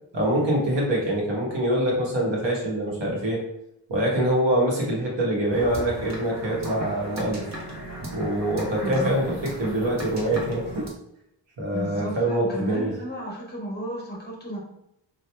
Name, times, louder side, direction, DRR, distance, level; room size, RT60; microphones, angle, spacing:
voice 1, 0.1-3.4 3.9-7.4 8.1-10.9 11.6-12.9, right 1 dB, 75° right, -3 dB, 1.1 m, -24 dB
sound 1, 5.5-10.9, right 1 dB, 40° right, 0.9 m, -36 dB
voice 2, 8.8-9.2 11.7-14.6, left 1 dB, 25° left, -3 dB, 0.9 m, -33 dB
2.9 x 2.3 x 3.2 m, 0.81 s
wide cardioid pair, 110°, 44 cm